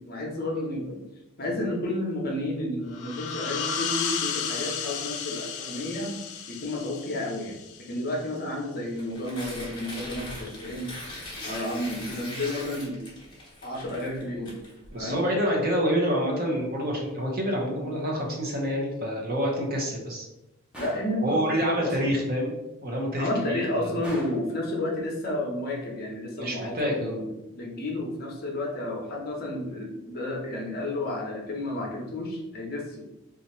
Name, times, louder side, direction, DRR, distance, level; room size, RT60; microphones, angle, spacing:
voice 1, 0.1-1.0 1.4-6.1 6.5-7.6 7.9-10.9 11.4-13.0 13.6-14.6 15.0-15.3 20.8-21.4 21.6-22.1 23.2-27.3 27.5-33.2, left 1 dB, 45° left, -1 dB, 0.7 m, -31 dB
sound 1, 2.9-8.3, left 7 dB, 80° left, 0.5 m, -33 dB
Tearing, 8.9-15.1, left 1 dB, 20° left, 1.0 m, -40 dB
voice 2, 14.9-20.3 21.2-22.5 22.8-23.6 26.4-27.2, equal, 45° right, -1 dB, 0.8 m, -27 dB
Gunshot gunfire, 20.7-21.2 24.0-24.5, right 1 dB, 5° right, 0.6 m, -41 dB
2.8 x 2.4 x 4.2 m, 0.95 s
head